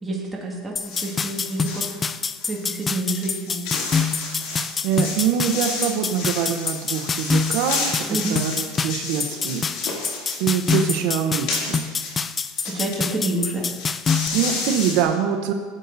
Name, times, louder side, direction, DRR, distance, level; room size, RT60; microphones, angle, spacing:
voice 1, 0.0-1.9 2.4-3.6 8.1-8.4 12.6-13.7, right 2 dB, 10° right, -3 dB, 1.9 m, -28 dB
sound 1, 0.8-1.9 2.4-13.0 13.3-13.4 13.6-15.0, left 3 dB, 65° left, 2.5 m, -32 dB
sound 2, 0.8-14.3, left 5 dB, 20° left, 0.3 m, -26 dB
voice 2, 4.4-10.1 10.4-11.8 14.1-15.5, right 8 dB, 65° right, 4 dB, 0.8 m, -24 dB
15.5 x 8.0 x 2.7 m, 1.5 s
supercardioid pair, 135°, 0 cm